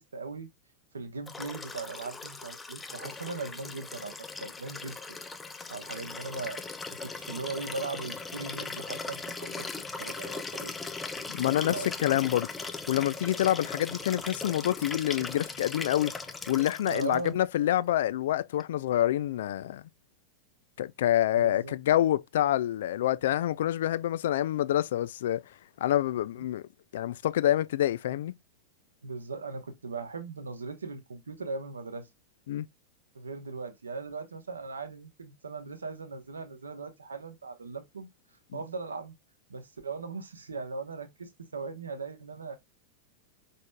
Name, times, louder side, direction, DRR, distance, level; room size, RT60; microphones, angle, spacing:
voice 1, 0.1-0.5 0.9-5.2 5.7-6.6 7.0-9.7 10.0-10.7 11.6-11.9 16.9-17.4 21.4-21.7 29.0-32.1 33.1-38.1 38.5-39.1 39.5-42.6, right 4 dB, 75° right, 0.9 m, -39 dB
Liquid, 1.3-17.3 18.6-18.7, left 4 dB, 15° left, 0.6 m, -39 dB
voice 2, 11.3-12.5 12.9-16.1 16.5-19.8 20.8-25.4 25.8-26.6 26.9-28.3 32.5-32.7, left 12 dB, 60° left, 0.3 m, -27 dB
5.0 x 4.0 x 2.2 m
figure-of-eight pair, 90°, 0 cm